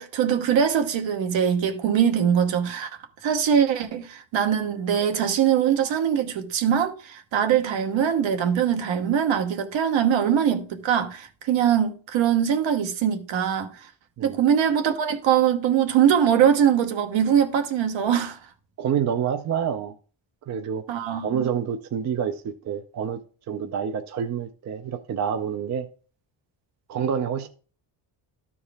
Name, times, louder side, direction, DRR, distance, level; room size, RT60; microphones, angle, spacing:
voice 1, 0.0-2.9 3.2-13.7 14.2-18.4 20.9-21.5, right 8 dB, 70° right, 1.1 m, -22 dB
voice 2, 18.8-19.9 20.5-20.8 21.2-23.2 23.5-25.9 26.9-27.5, right 8 dB, 40° right, 0.5 m, -27 dB
13.0 x 4.6 x 3.4 m
cardioid pair, 170°, 47 cm